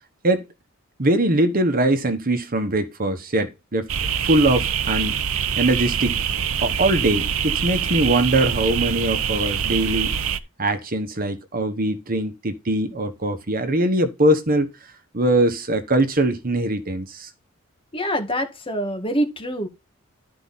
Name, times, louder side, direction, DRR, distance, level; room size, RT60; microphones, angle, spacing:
voice 1, 1.0-3.9 4.2-5.2 5.6-6.2 6.6-10.1 10.6-14.7 15.1-17.3, right 1 dB, 45° right, 1.3 m, -21 dB
sound 1, 3.9-10.4, right 8 dB, 80° right, 0.8 m, -24 dB
voice 2, 17.9-19.7, equal, 25° left, 1.9 m, -25 dB
12.0 x 4.8 x 4.1 m
head